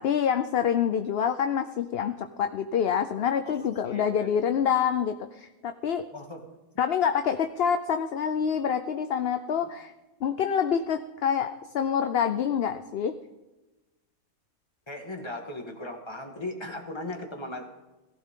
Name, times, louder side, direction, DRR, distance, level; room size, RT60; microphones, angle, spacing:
voice 1, 0.0-6.1 6.8-9.9 10.2-13.1, left 8 dB, 55° left, 8 dB, 0.8 m, -26 dB
voice 2, 3.5-4.3 6.1-6.5 14.9-17.7, left 1 dB, 20° left, 3 dB, 1.9 m, -38 dB
18.0 x 15.5 x 3.8 m, 1.1 s
omnidirectional pair, 1.5 m